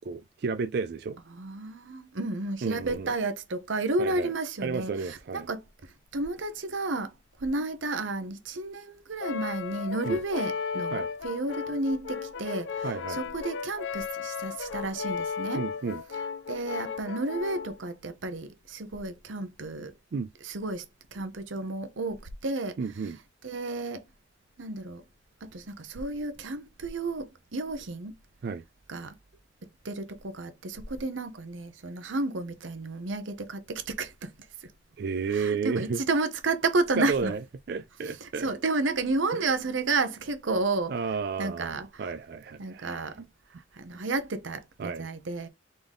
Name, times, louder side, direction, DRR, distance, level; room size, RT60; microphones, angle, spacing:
voice 1, 0.0-1.2 2.6-3.1 4.0-4.3 4.6-5.5 10.1-10.2 10.9-11.1 12.8-13.2 15.5-16.0 20.1-20.3 22.8-23.2 28.4-28.6 35.0-36.0 36.9-37.4 37.7-38.5 39.3-39.5 40.9-43.3 44.8-45.1, right 5 dB, 55° right, 0.4 m, -32 dB
voice 2, 1.3-7.1 7.4-15.7 16.5-20.0 20.4-20.8 21.1-22.8 23.0-23.1 23.4-24.1 24.6-25.0 25.4-28.2 28.9-29.1 29.8-34.7 35.3-37.3 38.2-40.9 41.4-42.1 42.6-43.2 43.5-45.5, right 2 dB, 85° right, 0.8 m, -32 dB
Brass instrument, 9.2-17.8, left 6 dB, 75° left, 0.5 m, -35 dB
3.9 x 3.7 x 3.4 m
head